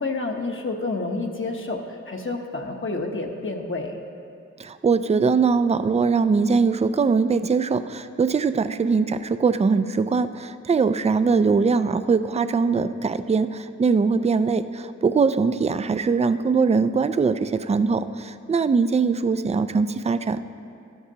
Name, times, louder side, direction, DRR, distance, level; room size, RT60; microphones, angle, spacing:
voice 1, 0.0-4.0, left 3 dB, 45° left, 2 dB, 1.0 m, -29 dB
voice 2, 4.6-20.4, right 5 dB, 25° right, 12 dB, 0.3 m, -21 dB
12.5 x 11.5 x 2.8 m, 2.4 s
wide cardioid pair, 60°, 29 cm